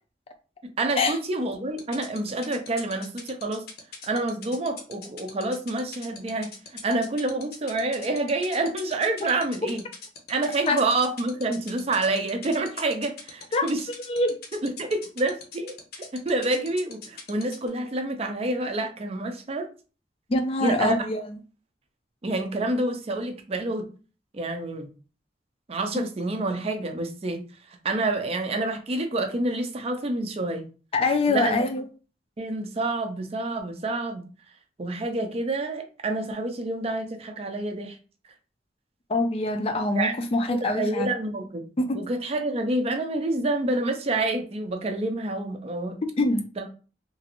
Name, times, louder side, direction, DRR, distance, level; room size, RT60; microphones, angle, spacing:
voice 1, 0.8-3.7 4.1-9.8 10.3-13.8 14.6-19.7 20.6-21.0 22.2-23.9 24.3-24.9 25.7-27.4 27.8-30.7 31.3-31.6 32.4-34.2 34.8-38.0 39.9-40.1 40.5-41.6 41.9-46.0 46.6-46.7, right 2 dB, 35° right, 0.4 m, -28 dB
sound 1, 1.8-17.7, left 6 dB, 60° left, 0.7 m, -40 dB
voice 2, 14.1-14.4 20.3-21.4 30.9-31.8 39.1-41.1 41.8-42.0 46.2-46.4, left 2 dB, 35° left, 0.4 m, -24 dB
3.0 x 2.5 x 2.9 m
head